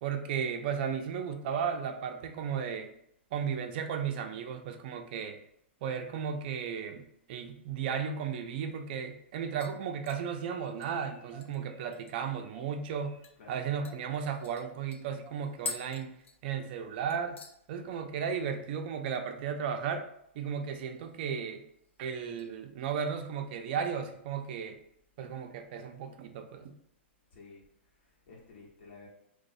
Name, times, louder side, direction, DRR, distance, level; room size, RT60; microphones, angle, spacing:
voice 1, 0.0-2.9 3.3-5.4 5.8-13.1 13.5-16.1 16.4-17.4 17.7-20.1 20.3-21.6 22.0-24.8 25.2-26.7, right 7 dB, 50° right, 6 dB, 0.4 m, -35 dB
sound 1, 9.6-12.4 12.8-12.9 13.2-13.4 13.8-16.8 17.1-17.6 17.9-18.3 18.6-18.7 20.8-21.4 21.8-22.5 22.9-23.2 23.7-24.6 25.0-25.1, left 4 dB, 90° left, 0.3 m, -47 dB
sound 2, 10.0-10.7 11.0-11.9 12.3-13.3 13.8-14.4 15.2-15.7, right 2 dB, 10° right, 0.7 m, -55 dB
voice 2, 27.3-29.1, left 4 dB, 60° left, -3 dB, 0.9 m, -53 dB
2.5 x 2.1 x 2.4 m, 0.73 s
hypercardioid pair, 130°, 7 cm